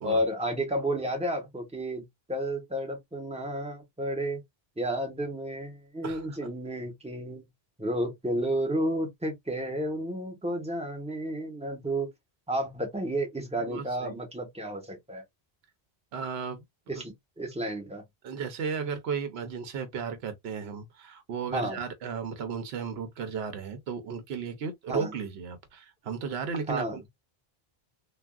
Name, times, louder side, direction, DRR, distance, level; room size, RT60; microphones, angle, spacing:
voice 1, 0.0-4.4 4.8-7.4 7.8-12.1 12.5-15.2 16.9-18.0 21.5-21.8 24.9-25.1 26.7-27.0, right 1 dB, 5° right, 0.9 m, -31 dB
voice 2, 6.0-6.5 13.7-14.2 16.1-16.6 16.9-17.0 18.2-27.1, right 6 dB, 90° right, 0.9 m, -35 dB
3.4 x 2.3 x 2.2 m
omnidirectional pair, 1.0 m